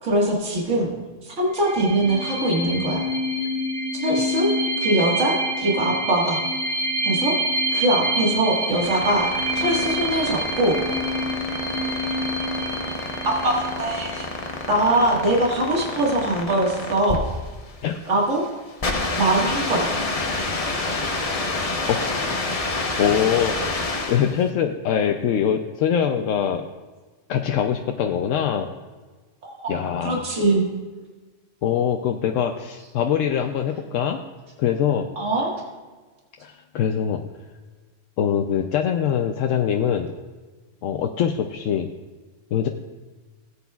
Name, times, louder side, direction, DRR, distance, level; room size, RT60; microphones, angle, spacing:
voice 1, 0.0-0.9 1.2-3.0 3.9-4.5 4.8-6.4 7.0-7.3 7.7-10.8 13.3-14.3 14.7-17.2 18.1-18.4 19.2-19.9 29.4-30.6 35.2-35.5, right 1 dB, 75° right, -2 dB, 2.1 m, -22 dB
sound 1, 1.6-15.0, equal, 40° right, 3.3 m, -27 dB
sound 2, 8.5-24.4, left 3 dB, 30° left, 0.8 m, -28 dB
voice 2, 21.9-22.2 23.0-23.6 24.1-26.7 27.3-28.7 29.7-30.2 31.6-34.2 34.6-35.1 36.4-37.2 38.2-40.1 40.8-41.9 42.5-42.7, left 8 dB, 80° left, 4 dB, 0.9 m, -23 dB
17.0 x 8.4 x 2.3 m, 1.3 s
omnidirectional pair, 1.3 m